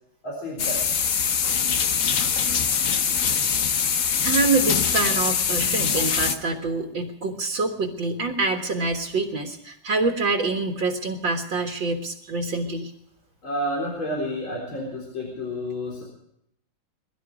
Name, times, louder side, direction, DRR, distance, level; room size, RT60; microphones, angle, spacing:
voice 1, 0.2-0.8 5.6-5.7 13.4-16.1, equal, 85° left, -2 dB, 4.9 m, -30 dB
sound 1, 0.6-6.3, left 7 dB, 50° left, 1.1 m, -23 dB
voice 2, 4.2-12.9, right 3 dB, 75° right, 2 dB, 2.3 m, -26 dB
22.0 x 12.5 x 4.9 m, 0.75 s
omnidirectional pair, 2.1 m